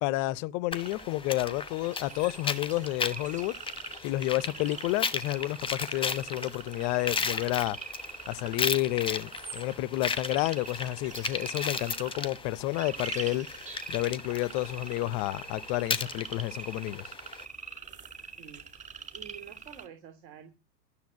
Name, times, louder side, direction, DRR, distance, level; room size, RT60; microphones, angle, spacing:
voice 1, 0.0-3.6 4.0-7.8 8.3-17.1, left 17 dB, 35° left, 0.7 m, -30 dB
sound 1, 0.7-17.4, left 5 dB, 10° left, 1.1 m, -36 dB
sound 2, 0.7-19.9, right 4 dB, 15° right, 2.2 m, -44 dB
voice 2, 18.4-18.9 19.1-20.5, right 9 dB, 45° right, 3.2 m, -48 dB
13.0 x 7.2 x 8.4 m
hypercardioid pair, 105°, 50 cm